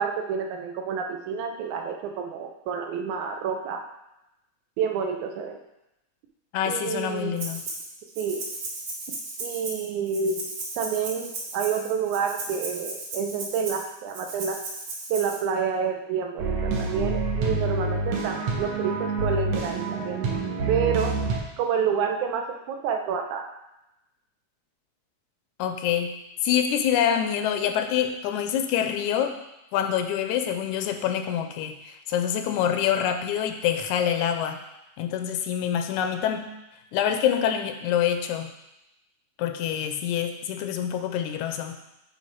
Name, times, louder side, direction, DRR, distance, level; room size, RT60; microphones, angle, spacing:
voice 1, 0.0-3.8 4.8-5.6 6.7-7.4 8.2-8.4 9.4-10.5 10.8-14.6 15.1-20.2 20.7-21.1 21.6-23.5, right 6 dB, 85° right, 3 dB, 2.2 m, -28 dB
voice 2, 6.5-7.6 25.6-26.1 26.4-29.3 29.7-34.6 35.0-36.5 36.9-38.5 39.4-41.8, left 9 dB, 90° left, 7 dB, 2.0 m, -26 dB
Rattle (instrument), 7.4-7.9 8.1-15.4, right 2 dB, 50° right, 1.7 m, -36 dB
sound 1, 16.4-21.4, right 3 dB, 65° right, 2.1 m, -27 dB
9.3 x 3.3 x 4.6 m, 0.91 s
omnidirectional pair, 3.4 m